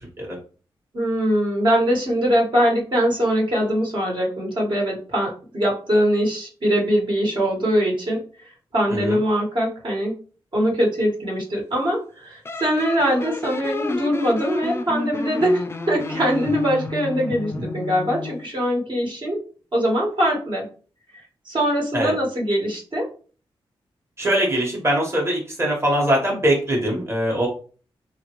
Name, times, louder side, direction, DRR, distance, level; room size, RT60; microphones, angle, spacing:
voice 1, 0.9-8.2 8.7-10.1 10.5-19.4 19.7-20.6 21.4-23.1, equal, 55° right, -2 dB, 1.3 m, -22 dB
sound 1, 12.5-18.5, left 3 dB, 25° left, 0.3 m, -31 dB
voice 2, 24.2-27.5, right 1 dB, 25° right, -2 dB, 1.1 m, -22 dB
3.0 x 2.5 x 2.9 m, 0.39 s
cardioid pair, 75°, 10 cm